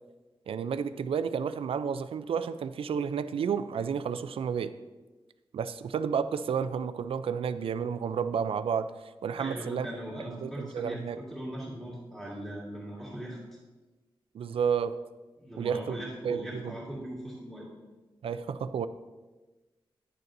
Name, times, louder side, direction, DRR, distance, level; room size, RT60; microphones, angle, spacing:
voice 1, 0.5-4.7 5.5-8.9 9.2-9.9 10.4-11.2 14.3-15.0 15.6-16.7 18.2-18.9, right 7 dB, 85° right, 12 dB, 0.4 m, -31 dB
voice 2, 9.3-13.4 15.4-17.7, equal, ahead, -7 dB, 2.2 m, -40 dB
10.0 x 6.7 x 2.6 m, 1.2 s
wide cardioid pair, 160°, 9 cm